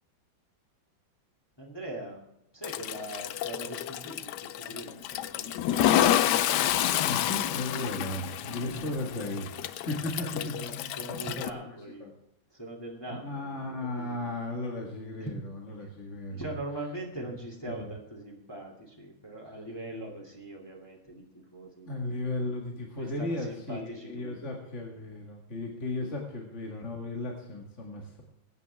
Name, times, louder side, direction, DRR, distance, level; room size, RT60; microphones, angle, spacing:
voice 1, 1.6-2.2 2.5-6.2 8.5-8.8 9.2-9.3 10.2-12.1 12.5-14.3 15.2-15.3 15.8-15.9 16.3-22.2 23.0-24.4, right 1 dB, 10° left, -1 dB, 2.6 m, -42 dB
Toilet flush, 2.6-11.5, left 12 dB, 70° left, 1.1 m, -29 dB
voice 2, 7.0-9.5 9.7-11.4 11.9-12.1 13.2-15.4 15.6-16.4 17.2-17.3 17.7-17.9 21.9-28.2, left 2 dB, 40° left, -1 dB, 2.1 m, -35 dB
22.0 x 9.4 x 3.5 m, 0.82 s
omnidirectional pair, 2.1 m